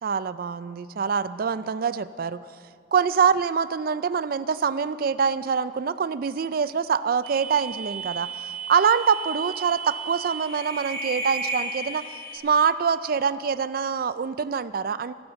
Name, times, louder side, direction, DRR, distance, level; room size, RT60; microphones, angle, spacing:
voice 1, 0.0-2.5 2.9-15.1, right 6 dB, 55° right, 14 dB, 0.4 m, -25 dB
sound 1, 7.2-12.4, right 3 dB, 35° right, 2.4 m, -34 dB
14.0 x 13.5 x 7.0 m, 2.2 s
head